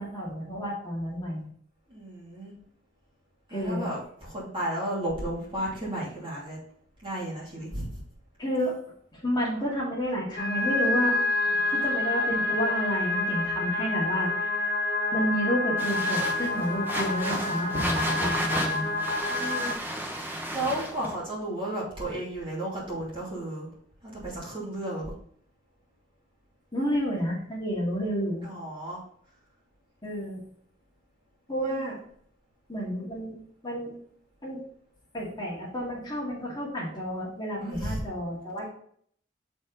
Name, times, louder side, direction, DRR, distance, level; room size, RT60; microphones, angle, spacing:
voice 1, 0.0-1.5 3.5-3.9 8.4-8.8 9.1-11.2 11.7-14.7 15.1-18.9 26.7-28.5 30.0-30.4 31.5-32.0 32.7-33.3 33.6-34.0 34.4-34.6 35.1-38.7, equal, 25° left, -5 dB, 2.1 m, -30 dB
voice 2, 1.9-2.5 3.5-6.6 7.0-8.0 11.6-11.8 19.2-19.8 20.5-23.7 24.0-25.0 28.4-29.0 37.6-38.0, right 1 dB, 30° right, -6 dB, 2.7 m, -33 dB
sound 1, 10.3-19.7, left 2 dB, 60° left, 1.2 m, -28 dB
sound 2, 15.8-21.1, right 1 dB, 10° right, 1.0 m, -33 dB
7.0 x 4.4 x 4.0 m, 0.62 s
head